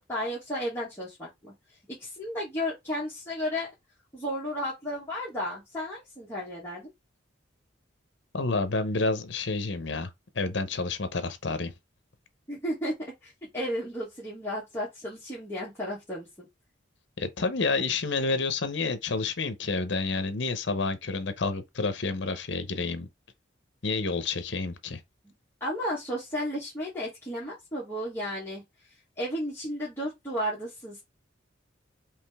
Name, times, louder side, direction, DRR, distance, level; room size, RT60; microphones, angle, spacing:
voice 1, 0.1-1.5 2.0-3.7 4.1-6.9 12.5-16.5 25.6-28.6 29.2-31.0, equal, 10° left, 1.4 m, -33 dB
voice 2, 8.3-11.7 17.2-23.1 23.8-25.0, left 3 dB, 60° left, 0.8 m, -29 dB
5.1 x 2.9 x 3.5 m
head